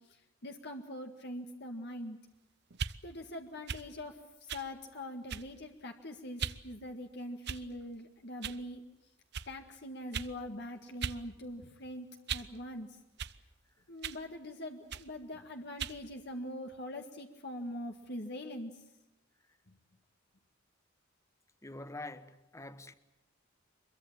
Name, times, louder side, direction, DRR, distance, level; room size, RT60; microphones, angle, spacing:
voice 1, 0.0-2.2 3.0-8.8 9.5-13.0 13.9-18.8 19.7-19.8, left 1 dB, 55° left, 1.9 m, -43 dB
sound 1, 2.7-3.0 3.7-3.9 4.5-4.7 5.3-5.6 6.4-6.6 7.4-7.8 8.4-8.6 9.3-9.5 10.1-10.3 11.0-11.2 11.6-12.6 13.2-13.4 14.0-14.2 14.9-15.1 15.8-16.0, right 6 dB, 55° right, 0.8 m, -38 dB
voice 2, 21.6-22.9, left 2 dB, 15° left, 1.3 m, -45 dB
25.5 x 22.5 x 7.4 m
head